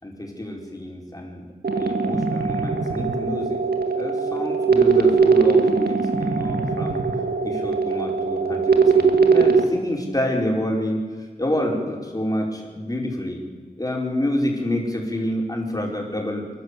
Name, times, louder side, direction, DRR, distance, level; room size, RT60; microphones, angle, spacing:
voice 1, 0.0-1.5 1.7-3.6 4.0-7.0 7.4-11.1 11.4-13.4 13.8-16.5, left 1 dB, 25° left, 0 dB, 5.0 m, -28 dB
sound 1, 1.6-9.6, right 5 dB, 90° right, 1.8 m, -20 dB
27.5 x 12.0 x 8.5 m, 1.5 s
wide cardioid pair, 80°, 16 cm